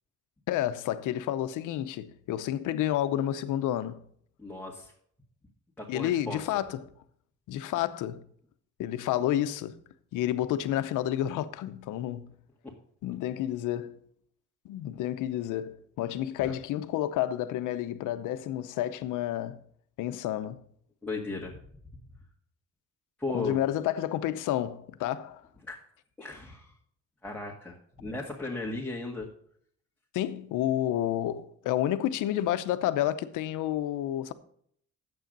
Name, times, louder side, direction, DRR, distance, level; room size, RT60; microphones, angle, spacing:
voice 1, 0.5-4.0 5.9-6.8 7.5-8.2 8.8-9.8 10.1-12.3 13.0-14.0 14.6-19.6 20.0-20.6 23.3-25.4 30.1-34.3, left 12 dB, 90° left, 0.8 m, -30 dB
voice 2, 4.4-4.9 5.8-6.4 12.6-12.7 16.4-16.5 21.0-21.6 23.2-23.6 25.7-25.8 26.2-26.7 27.2-29.3, left 2 dB, 5° left, 1.9 m, -36 dB
9.1 x 7.8 x 5.3 m
cardioid pair, 90°, 30 cm